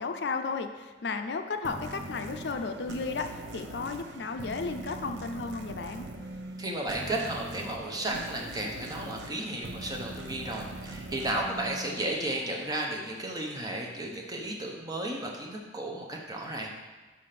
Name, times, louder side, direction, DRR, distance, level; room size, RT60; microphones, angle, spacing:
voice 1, 0.0-6.1, left 4 dB, 70° left, 7 dB, 0.5 m, -34 dB
sound 1, 1.6-12.8, right 2 dB, 75° right, 0.8 m, -42 dB
voice 2, 6.6-16.7, right 1 dB, 20° right, 0 dB, 0.9 m, -34 dB
5.3 x 5.1 x 5.8 m, 1.2 s
head